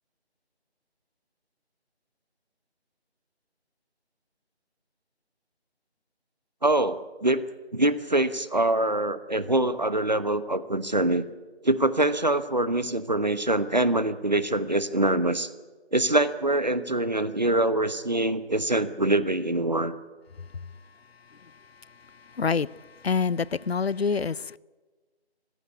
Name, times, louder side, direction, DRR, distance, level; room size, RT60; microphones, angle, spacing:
voice 1, 6.6-7.4 7.7-11.2 11.6-15.5 15.9-19.9, right 1 dB, 40° right, 1.0 m, -24 dB
voice 2, 22.4-22.7 23.0-24.6, left 5 dB, 65° left, 0.6 m, -26 dB
20.5 x 15.5 x 9.6 m
figure-of-eight pair, 180°, 33 cm